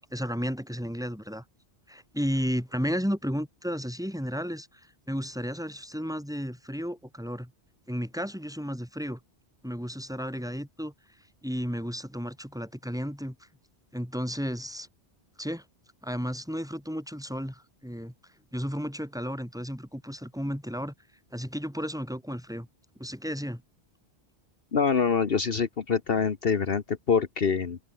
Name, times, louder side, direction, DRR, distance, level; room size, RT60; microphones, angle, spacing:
voice 1, 0.0-1.4 1.9-7.5 7.9-9.2 9.6-10.9 11.4-13.5 13.9-14.9 15.4-15.6 16.0-18.1 18.5-20.9 21.3-22.7 23.0-23.6, equal, 5° right, 7.1 m, -33 dB
voice 2, 24.7-27.8, left 6 dB, 60° left, 1.4 m, -25 dB
omnidirectional pair, 1.1 m